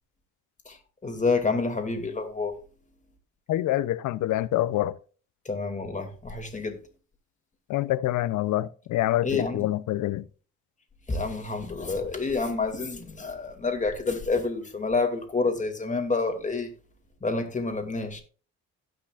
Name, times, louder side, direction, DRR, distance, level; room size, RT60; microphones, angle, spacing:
voice 1, 0.7-2.5 5.4-6.8 9.2-9.7 11.1-16.7 17.2-18.2, left 3 dB, 25° left, 2.4 m, -28 dB
voice 2, 3.5-4.9 7.7-10.2, left 14 dB, 80° left, 0.7 m, -26 dB
16.5 x 5.9 x 2.5 m
cardioid pair, 90°, 30 cm